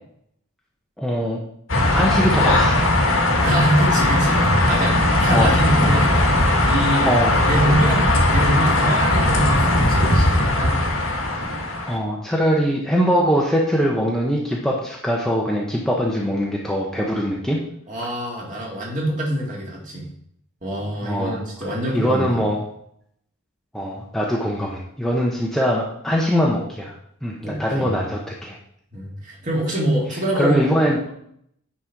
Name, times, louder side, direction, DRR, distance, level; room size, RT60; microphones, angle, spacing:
voice 1, 1.0-1.4 1.9-2.9 5.3-5.5 7.0-7.4 11.9-17.6 21.0-21.4 21.9-22.6 23.7-26.9 27.2-28.6 30.3-31.0, equal, ahead, -3 dB, 0.8 m, -22 dB
sound 1, 1.7-12.0, left 1 dB, 65° left, 1.6 m, -18 dB
voice 2, 3.4-6.1 6.7-7.1 7.3-10.9 17.9-20.1 20.6-22.4 27.4-27.9 28.9-30.7, right 1 dB, 35° right, -3 dB, 2.2 m, -25 dB
9.9 x 4.3 x 4.7 m, 0.69 s
head